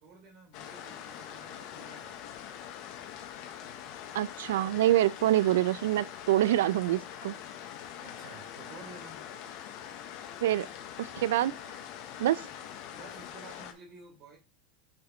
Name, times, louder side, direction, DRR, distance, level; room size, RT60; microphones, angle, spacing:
voice 1, 0.0-2.6 8.0-9.2 12.9-14.4, right 3 dB, 50° right, 3.0 m, -52 dB
sound 1, 0.5-13.7, left 10 dB, 55° left, 0.9 m, -44 dB
voice 2, 4.1-7.3 10.4-10.7 11.0-11.5 12.2-12.5, right 13 dB, 85° right, 0.3 m, -26 dB
6.2 x 5.8 x 3.1 m
supercardioid pair, 135°, 0 cm